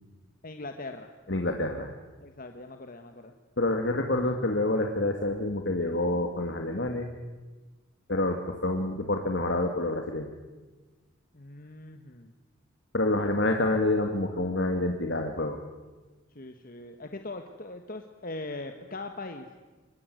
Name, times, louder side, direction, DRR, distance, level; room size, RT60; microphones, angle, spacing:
voice 1, 0.4-1.1 2.2-3.3 11.3-12.3 13.2-13.5 16.3-19.5, left 2 dB, 45° left, 6 dB, 1.6 m, -41 dB
voice 2, 1.3-1.9 3.6-7.1 8.1-10.4 12.9-15.6, left 2 dB, 60° left, 3 dB, 2.3 m, -27 dB
25.0 x 22.5 x 9.5 m, 1.2 s
head